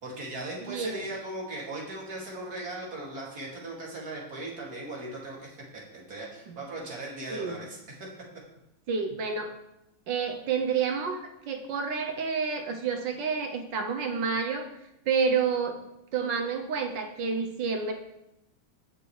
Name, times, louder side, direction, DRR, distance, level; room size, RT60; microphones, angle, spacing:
voice 1, 0.0-5.6 5.9-8.1, right 2 dB, 40° right, -4 dB, 3.0 m, -38 dB
voice 2, 0.6-1.0 6.5-6.6 7.3-7.6 8.9-9.5 10.1-14.7 15.1-15.8 16.1-17.9, right 5 dB, 65° right, 5 dB, 1.4 m, -29 dB
17.0 x 6.7 x 3.3 m, 0.85 s
omnidirectional pair, 2.4 m